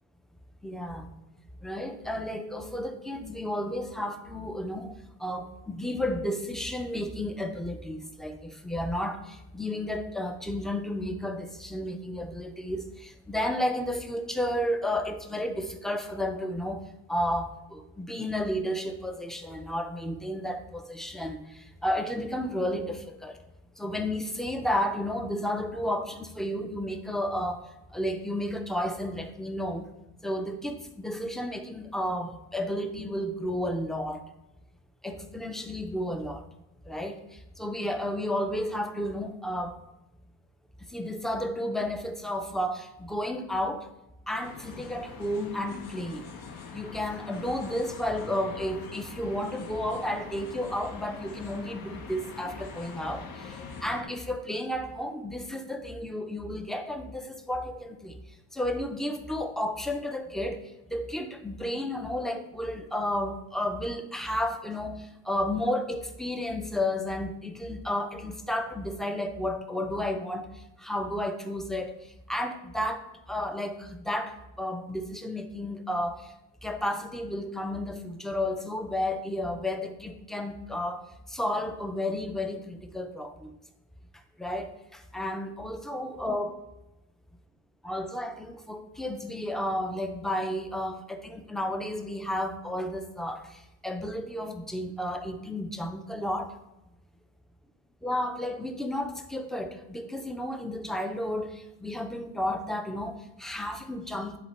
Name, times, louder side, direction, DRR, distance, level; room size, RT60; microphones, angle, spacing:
voice 1, 0.6-1.1 1.6-4.9 5.2-16.8 17.1-23.4 23.8-29.9 30.2-34.2 35.0-36.4 36.9-37.2 37.6-39.8 40.9-43.9 44.3-46.3 46.7-58.2 58.5-60.6 60.9-70.5 70.8-72.0 72.3-76.3 76.6-81.0 81.3-83.5 84.4-86.6 87.8-96.5 98.0-104.4, left 1 dB, ahead, 7 dB, 0.4 m, -32 dB
sound 1, 44.4-54.0, left 5 dB, 80° left, 1.3 m, -43 dB
10.0 x 3.7 x 4.3 m, 0.90 s
cardioid pair, 150°, 37 cm